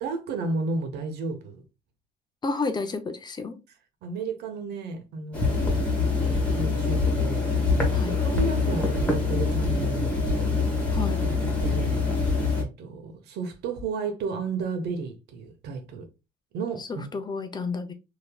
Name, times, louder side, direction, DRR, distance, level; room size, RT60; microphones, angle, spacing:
voice 1, 0.0-1.6 4.0-5.7 6.0-7.5 8.2-10.6 11.6-12.0 12.5-16.1 16.5-17.0, right 4 dB, 75° right, 0.8 m, -33 dB
voice 2, 2.4-3.6 7.9-8.2 10.9-11.2 16.8-17.9, left 4 dB, 25° left, 0.5 m, -31 dB
sound 1, 5.3-12.6, left 3 dB, 10° left, 1.4 m, -24 dB
3.1 x 2.8 x 2.2 m
cardioid pair, 110°, 17 cm